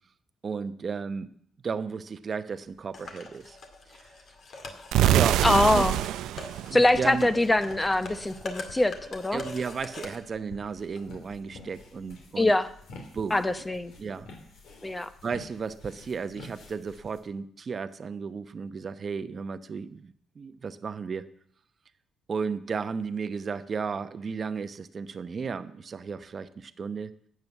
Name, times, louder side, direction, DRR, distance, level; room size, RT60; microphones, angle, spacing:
voice 1, 0.4-1.3 1.6-3.6 3.9-4.0 5.1-5.4 5.7-5.9 6.7-7.3 9.3-12.5 13.1-13.4 14.0-14.3 15.2-21.3 22.3-27.1, right 5 dB, 45° right, 12 dB, 0.9 m, -34 dB
sound 1, 2.9-10.1, left 2 dB, 55° left, 2.2 m, -43 dB
sound 2, 4.9-7.8, right 13 dB, 85° right, 0.4 m, -25 dB
voice 2, 5.4-6.0 6.7-9.4 12.4-12.7 13.3-13.9 14.8-15.1, left 2 dB, 15° left, 11 dB, 0.8 m, -23 dB
sound 3, 7.0-17.2, left 2 dB, 80° left, 3.2 m, -50 dB
12.5 x 8.0 x 8.1 m, 0.67 s
cardioid pair, 90°, 0 cm